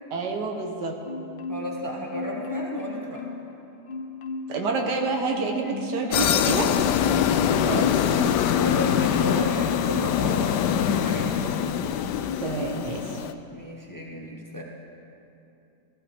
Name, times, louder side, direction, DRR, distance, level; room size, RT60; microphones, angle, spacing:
voice 1, 0.1-1.0 4.5-6.7 7.7-8.2 12.4-13.2, right 3 dB, 80° right, 2 dB, 1.7 m, -28 dB
Marimba xylophone, 1.1-1.8 2.1-3.5 3.9-4.6 5.0-9.2 9.5-10.2 10.6-10.8, left 3 dB, 50° left, 0.6 m, -36 dB
voice 2, 1.5-3.3 7.7-8.0 8.5-11.4 13.5-14.6, left 1 dB, 15° left, -2 dB, 1.1 m, -34 dB
sound 1, 6.1-13.3, left 9 dB, 80° left, 1.2 m, -23 dB
15.5 x 14.5 x 3.5 m, 2.8 s
omnidirectional pair, 1.8 m